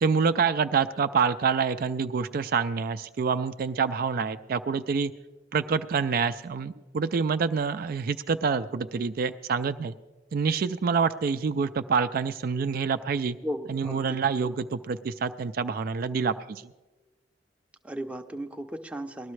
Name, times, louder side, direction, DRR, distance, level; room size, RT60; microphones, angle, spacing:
voice 1, 0.0-5.1 5.5-9.9 10.3-13.4 13.7-16.6, right 5 dB, 55° right, 10 dB, 0.4 m, -27 dB
voice 2, 13.4-14.2 17.8-19.3, equal, 5° right, 5 dB, 0.6 m, -35 dB
19.5 x 12.5 x 3.2 m, 1.2 s
head